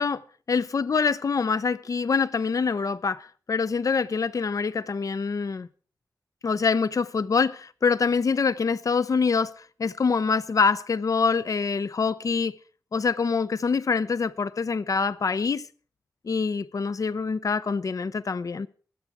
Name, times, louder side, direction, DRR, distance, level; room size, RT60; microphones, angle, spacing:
voice 1, 0.5-5.7 6.4-9.5 9.8-12.5 12.9-15.6 16.2-18.7, left 5 dB, 60° left, 0.6 m, -25 dB
22.5 x 8.2 x 4.7 m
wide cardioid pair, 85°, 7 cm